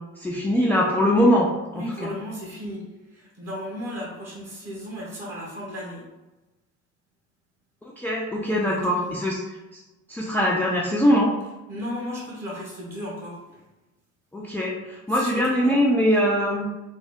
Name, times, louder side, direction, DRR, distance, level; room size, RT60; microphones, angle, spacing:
voice 1, 0.2-1.5 1.7-2.1 8.0-9.4 10.1-11.3 14.3-14.8 15.1-16.7, equal, 5° left, -3 dB, 0.4 m, -21 dB
voice 2, 1.7-2.8 3.1-6.0 8.4-9.2 11.7-13.6 15.1-15.8, equal, 40° right, -4 dB, 1.3 m, -35 dB
3.3 x 2.1 x 3.5 m, 1.1 s
hypercardioid pair, 60°, 38 cm